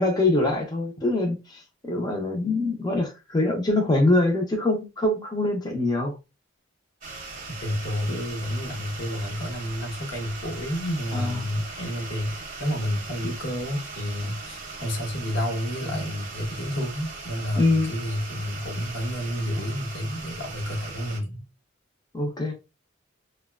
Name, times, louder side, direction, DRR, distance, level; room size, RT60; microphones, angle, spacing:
voice 1, 0.0-6.1 11.1-11.4 17.6-17.9 22.1-22.5, left 2 dB, 20° left, 0.4 m, -24 dB
sound 1, 7.0-21.2, right 3 dB, 45° right, 0.7 m, -39 dB
voice 2, 7.5-21.4, equal, 65° left, 0.9 m, -30 dB
2.8 x 2.1 x 2.2 m
head